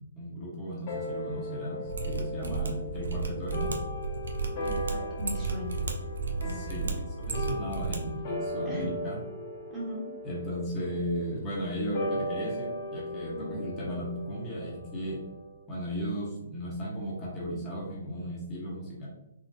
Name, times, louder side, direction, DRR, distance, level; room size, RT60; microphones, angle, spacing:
voice 1, 0.1-3.8 6.4-9.2 10.2-15.2 15.7-19.1, equal, 25° left, -5 dB, 0.9 m, -35 dB
sound 1, 0.9-15.6, left 1 dB, 40° left, 1.0 m, -38 dB
Mechanisms, 1.8-8.0 8.2-8.3, right 4 dB, 80° right, 0.6 m, -33 dB
voice 2, 4.6-5.8 6.4-6.9 8.6-8.9 9.7-10.1 13.3-13.7, left 1 dB, 10° right, -5 dB, 1.1 m, -39 dB
3.8 x 2.3 x 2.6 m, 0.91 s
hypercardioid pair, 145°, 0 cm